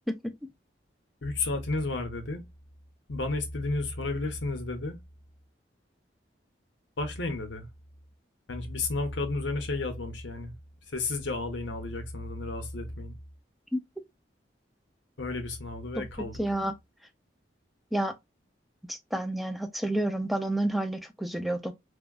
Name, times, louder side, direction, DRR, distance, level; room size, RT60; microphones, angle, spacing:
voice 1, 1.2-2.4 3.1-5.0 7.0-7.7 8.5-10.5 10.9-13.2 15.2-16.6, left 3 dB, 85° left, 0.8 m, -32 dB
voice 2, 16.4-16.7 17.9-18.1 18.9-21.7, right 1 dB, ahead, 0.3 m, -29 dB
3.4 x 2.2 x 2.3 m
head